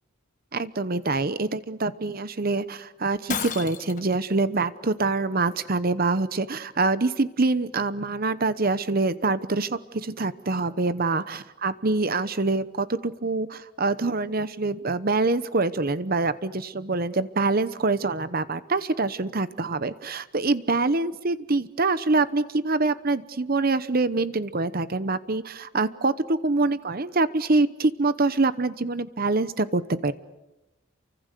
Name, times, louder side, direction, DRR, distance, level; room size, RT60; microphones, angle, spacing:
voice 1, 0.5-30.1, right 3 dB, 45° right, 14 dB, 0.9 m, -25 dB
Shatter, 3.3-4.1, left 6 dB, 35° left, 1.4 m, -32 dB
29.5 x 24.5 x 6.8 m, 0.99 s
head